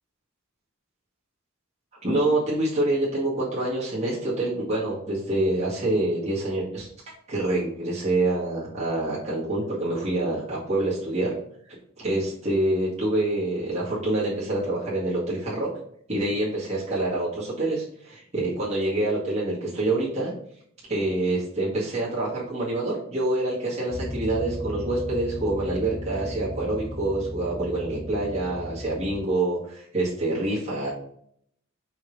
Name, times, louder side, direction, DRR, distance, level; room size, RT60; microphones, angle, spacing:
voice 1, 2.0-6.9 7.3-11.3 11.7-11.8 12.0-15.7 16.1-20.3 20.9-30.9, right 2 dB, 30° right, -8 dB, 2.2 m, -26 dB
sound 1, 23.9-29.3, left 1 dB, 30° left, 1.4 m, -36 dB
5.4 x 5.2 x 3.3 m, 0.66 s
head